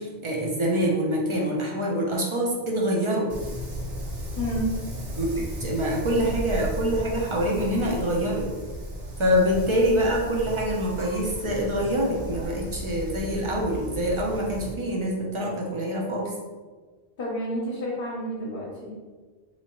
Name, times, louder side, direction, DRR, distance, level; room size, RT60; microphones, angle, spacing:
voice 1, 0.0-3.3 5.2-8.5 9.2-16.3, equal, 35° right, -2 dB, 0.5 m, -25 dB
Wind, 3.3-14.7, equal, 70° right, 1.1 m, -35 dB
voice 2, 4.4-4.8 17.2-18.9, equal, 55° left, -5 dB, 0.9 m, -30 dB
3.5 x 2.9 x 2.9 m, 1.4 s
omnidirectional pair, 1.1 m